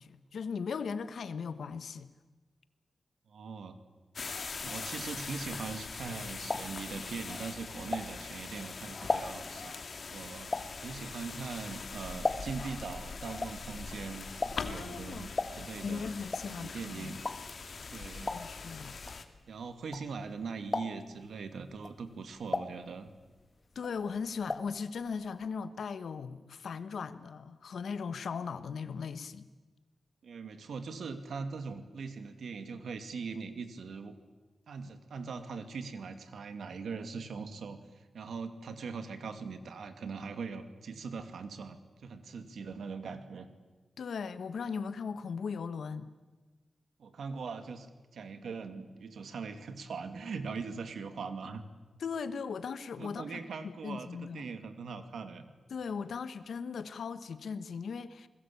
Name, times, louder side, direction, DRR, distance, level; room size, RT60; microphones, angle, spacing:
voice 1, 0.0-2.1 14.6-15.3 15.8-17.2 18.3-18.9 23.7-29.5 44.0-46.1 52.0-53.4 53.8-54.5 55.7-58.3, left 5 dB, 85° left, 1.4 m, -38 dB
voice 2, 3.3-3.8 4.6-9.8 10.1-10.5 10.8-16.1 16.5-17.2 17.9-18.3 19.5-23.1 30.2-34.1 34.7-43.5 47.0-47.9 48.1-51.6 53.0-55.5, right 5 dB, 90° right, 2.4 m, -41 dB
sound 1, 4.2-19.3, left 4 dB, 55° left, 2.2 m, -42 dB
sound 2, 6.5-8.5 8.8-12.8 13.0-20.3 20.6-21.2 21.7-23.4 23.7-24.8 25.1-25.2 25.4-25.5, left 3 dB, 35° left, 1.6 m, -37 dB
28.5 x 21.0 x 8.7 m
wide cardioid pair, 95°, 0 cm